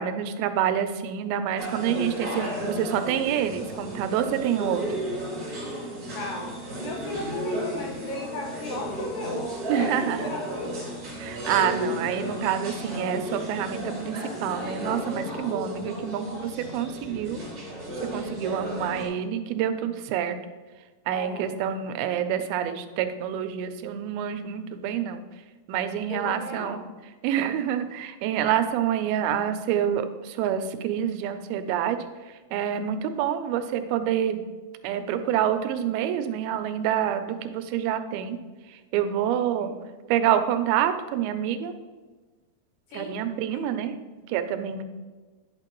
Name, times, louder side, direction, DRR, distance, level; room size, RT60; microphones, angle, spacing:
voice 1, 0.0-4.9 9.7-10.2 11.2-17.4 18.1-20.4 21.1-25.2 25.7-26.8 27.2-32.0 32.5-34.4 34.8-38.4 38.9-39.7 40.1-41.7 42.9-43.9 44.3-44.8, right 9 dB, 85° right, 9 dB, 2.5 m, -27 dB
sound 1, 1.6-19.1, equal, 40° right, 1.4 m, -34 dB
voice 2, 6.0-9.4 9.8-10.7 21.1-21.5 26.1-26.8 39.3-39.7 42.9-43.2 43.5-43.7, left 2 dB, 70° left, 0 dB, 2.6 m, -36 dB
9.5 x 6.3 x 3.0 m, 1.3 s
omnidirectional pair, 4.3 m